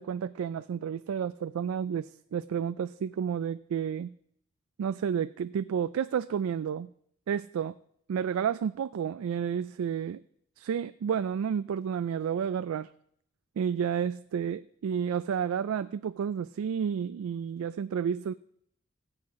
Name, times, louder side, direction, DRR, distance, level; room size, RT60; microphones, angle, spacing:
voice 1, 0.0-4.1 4.8-6.9 7.3-7.8 8.1-10.2 10.6-12.9 13.6-18.3, right 7 dB, 90° right, 14 dB, 0.3 m, -31 dB
16.5 x 7.9 x 3.7 m, 0.70 s
head